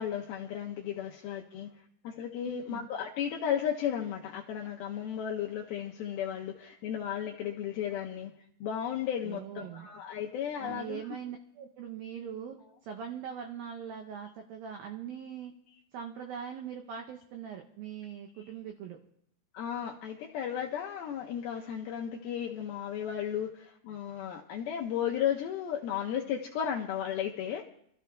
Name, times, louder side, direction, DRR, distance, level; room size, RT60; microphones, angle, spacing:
voice 1, 0.0-1.7 2.0-8.3 8.6-11.0 19.5-27.6, left 9 dB, 85° left, 1 dB, 2.1 m, -34 dB
voice 2, 2.5-2.9 9.2-9.9 10.6-15.5 15.9-19.0, right 8 dB, 85° right, 3 dB, 2.0 m, -41 dB
28.5 x 13.5 x 2.2 m, 0.71 s
omnidirectional pair, 5.1 m